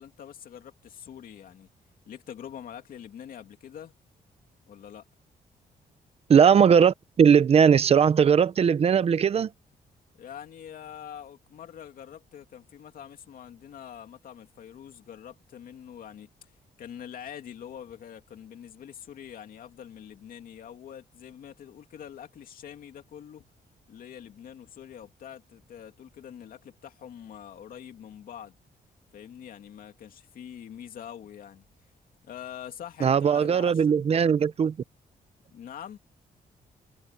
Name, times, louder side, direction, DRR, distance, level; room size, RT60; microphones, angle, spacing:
voice 1, 0.0-1.7 2.1-3.9 4.7-5.0 10.2-16.5 16.8-23.4 23.9-28.5 29.1-31.6 32.2-34.0 35.5-36.0, left 9 dB, 70° left, 2.7 m, -44 dB
voice 2, 6.3-9.5 33.0-34.7, right 7 dB, 40° right, 0.7 m, -19 dB
wide cardioid pair, 155°, 15 cm